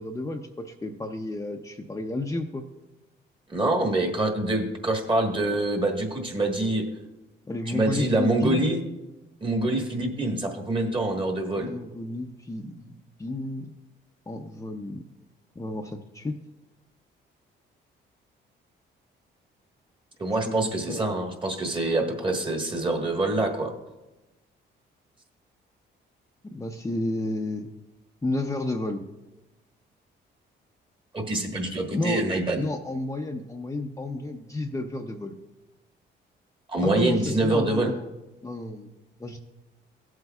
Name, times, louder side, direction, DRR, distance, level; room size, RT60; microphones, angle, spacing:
voice 1, 0.0-2.6 7.5-8.7 11.6-12.9 13.2-13.7 14.3-15.0 15.6-16.4 20.5-21.0 26.4-27.7 28.2-29.0 31.9-32.2 32.6-35.3 36.8-38.1 38.4-38.9 39.2-39.4, left 2 dB, 15° left, 3 dB, 0.6 m, -31 dB
voice 2, 3.5-6.9 7.7-8.8 9.4-11.7 20.2-23.7 31.1-32.6 36.7-37.9, right 2 dB, 25° right, 2 dB, 1.4 m, -25 dB
15.5 x 7.9 x 2.3 m, 1.0 s
cardioid pair, 90°, 20 cm